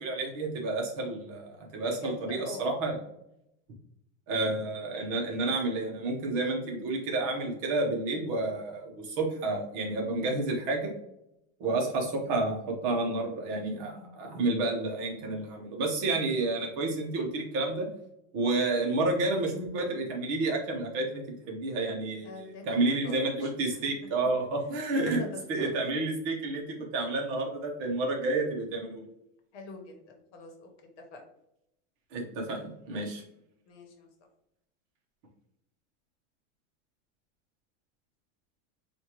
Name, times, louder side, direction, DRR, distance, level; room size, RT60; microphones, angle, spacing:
voice 1, 0.0-2.9 4.3-10.9 11.6-17.9 18.3-25.2 25.5-26.6 26.9-29.1 32.1-33.2, right 2 dB, 35° right, 0 dB, 0.9 m, -30 dB
voice 2, 2.0-2.7 11.7-12.0 22.2-22.7 23.0-23.5 23.8-23.9 24.9-26.0 29.5-30.7 31.1-31.2 33.7-34.1, left 3 dB, 60° left, 3 dB, 1.1 m, -44 dB
4.8 x 2.5 x 2.9 m, 0.83 s
supercardioid pair, 170°, 39 cm